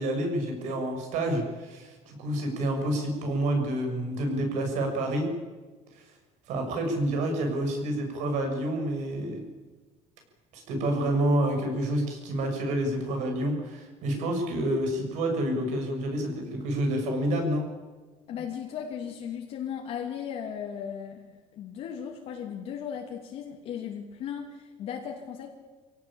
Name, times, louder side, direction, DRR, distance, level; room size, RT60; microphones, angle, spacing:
voice 1, 0.0-5.3 5.9-6.0 6.5-9.4 10.5-17.7, right 1 dB, 65° right, 3 dB, 6.7 m, -28 dB
voice 2, 18.3-25.5, left 8 dB, 50° left, 1 dB, 2.7 m, -36 dB
25.5 x 17.5 x 8.9 m, 1.3 s
cardioid pair, 175°, 13 cm